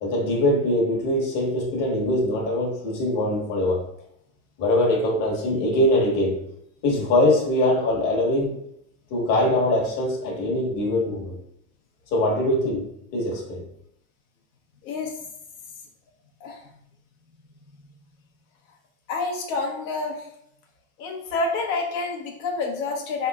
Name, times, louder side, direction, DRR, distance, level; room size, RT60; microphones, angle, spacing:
voice 1, 0.0-3.8 4.6-6.4 6.8-8.5 9.1-11.4 12.1-12.8 13.1-13.6, left 1 dB, 50° left, -2 dB, 1.4 m, -22 dB
voice 2, 14.8-15.1 16.4-16.6 17.8-17.9 19.1-20.3 21.0-23.3, left 3 dB, 75° left, 1 dB, 1.1 m, -28 dB
4.1 x 3.6 x 2.3 m, 0.74 s
supercardioid pair, 130°, 42 cm